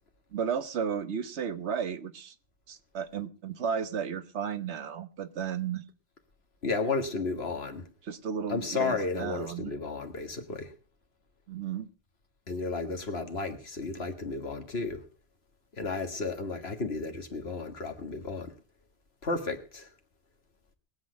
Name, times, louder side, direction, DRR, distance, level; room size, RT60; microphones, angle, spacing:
voice 1, 0.3-2.3 2.7-5.8 8.0-9.7 11.5-11.9, right 7 dB, 75° right, 1.3 m, -33 dB
voice 2, 6.6-7.9 8.5-10.7 12.5-15.0 15.8-18.5 19.2-19.9, left 3 dB, 65° left, 2.0 m, -33 dB
21.0 x 8.3 x 5.1 m
omnidirectional pair, 1.1 m